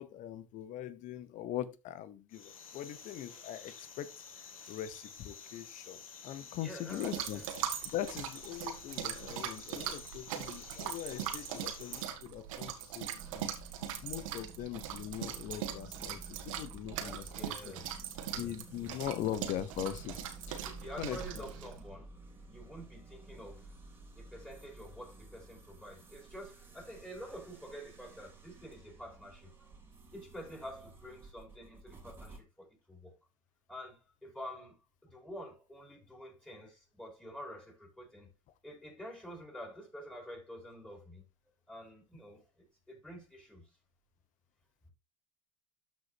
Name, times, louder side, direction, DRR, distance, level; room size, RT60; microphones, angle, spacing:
voice 1, 0.0-4.1 4.4-13.5 14.0-17.7 18.4-20.7 21.0-21.5, left 11 dB, 45° left, 1.0 m, -41 dB
sound 1, 2.3-12.1, left 6 dB, 85° left, 1.6 m, -51 dB
voice 2, 6.4-7.5 13.2-13.3 13.6-13.8 17.0-17.9 18.3-18.6 18.8-19.0 20.6-22.1 22.5-23.7 24.2-29.8 30.1-33.1 33.7-34.8 35.0-38.3 38.6-41.2 41.7-43.7, equal, 5° left, 4.8 m, -48 dB
sound 2, 6.9-21.8, right 10 dB, 70° right, 1.8 m, -41 dB
sound 3, 13.1-32.4, right 3 dB, 15° right, 2.8 m, -52 dB
13.0 x 5.4 x 2.8 m
hypercardioid pair, 85°, 17 cm